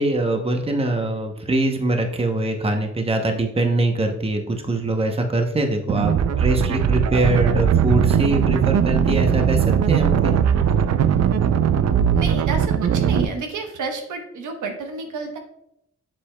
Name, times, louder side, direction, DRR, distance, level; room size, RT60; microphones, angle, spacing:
voice 1, 0.0-10.3, right 2 dB, 20° right, 4 dB, 0.8 m, -23 dB
sound 1, 5.9-13.2, right 8 dB, 60° right, 0.5 m, -19 dB
voice 2, 12.1-15.4, right 4 dB, 80° right, 5 dB, 1.0 m, -30 dB
7.4 x 6.7 x 2.2 m, 0.79 s
cardioid pair, 105°, 30 cm